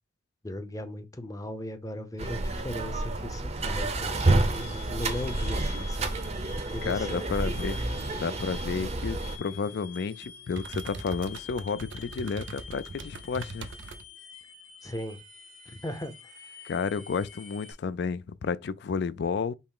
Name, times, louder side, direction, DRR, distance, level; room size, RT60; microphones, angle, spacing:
voice 1, 0.4-4.2 4.6-6.1 6.7-7.2 14.8-15.2 15.7-16.7, left 1 dB, 15° left, 0.6 m, -38 dB
sound 1, 2.2-9.4, right 2 dB, 35° right, 0.6 m, -29 dB
sound 2, 3.7-17.7, left 6 dB, 85° left, 1.5 m, -47 dB
voice 2, 6.8-7.8 8.2-13.7 16.6-19.5, left 5 dB, 60° left, 0.4 m, -31 dB
sound 3, 9.2-14.0, right 3 dB, 75° right, 0.6 m, -43 dB
5.5 x 2.0 x 4.7 m
head